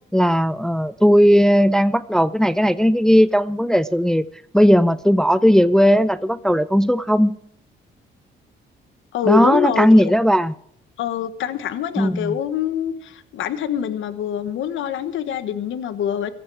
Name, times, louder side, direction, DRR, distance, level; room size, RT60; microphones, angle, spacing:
voice 1, 0.1-4.3 4.5-7.3 9.3-10.5 12.0-12.4, equal, 5° left, 14 dB, 0.5 m, -16 dB
voice 2, 9.1-10.2 11.0-16.3, left 9 dB, 80° left, 12 dB, 1.3 m, -25 dB
16.5 x 14.0 x 4.8 m, 0.67 s
cardioid pair, 90°, 20 cm